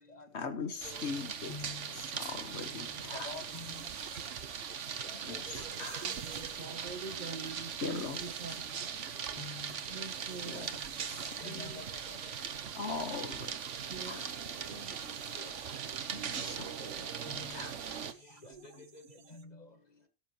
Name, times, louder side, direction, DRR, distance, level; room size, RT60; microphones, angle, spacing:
voice 1, 0.3-1.5 2.1-3.3 5.2-5.5 5.8-6.0 7.8-8.2 10.4-10.7 11.1-11.2 11.5-11.6 12.8-13.7 14.0-14.2 16.4-16.6 17.0-17.1 17.5-17.7 18.8-18.9, left 5 dB, 70° left, 1.5 m, -40 dB
sound 1, 0.8-18.1, right 7 dB, 80° right, 1.3 m, -40 dB
voice 2, 1.5-1.9 2.7-2.8 3.2-3.8 5.0-5.5 6.2-6.4 7.2-7.3 9.3-9.7 11.4-11.8 15.4-15.5 17.3-17.5 18.4-18.5 19.3-19.4, left 2 dB, 35° left, 1.6 m, -46 dB
sound 2, 1.9-19.4, right 7 dB, 60° right, 1.2 m, -53 dB
voice 3, 5.6-9.0 9.9-10.7 11.4-12.5 13.8-15.1 16.1-17.2 18.2-18.6, right 4 dB, 40° right, 1.5 m, -47 dB
18.0 x 7.5 x 2.9 m
omnidirectional pair, 1.2 m